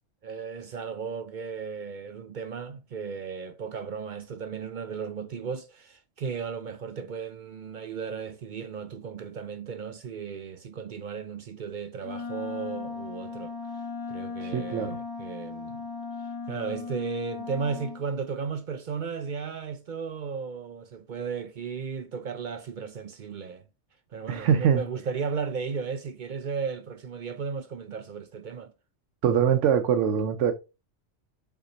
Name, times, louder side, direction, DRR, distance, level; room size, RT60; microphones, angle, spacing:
voice 1, 0.2-13.5 14.1-15.9 16.5-23.6 24.1-28.7, right 6 dB, 55° right, 0.6 m, -35 dB
Wind instrument woodwind instrument, 12.0-18.1, left 4 dB, 20° left, 1.2 m, -37 dB
voice 2, 14.4-15.0 24.3-24.8 29.2-30.5, right 8 dB, 90° right, 1.0 m, -23 dB
5.9 x 4.4 x 3.9 m
omnidirectional pair, 1.2 m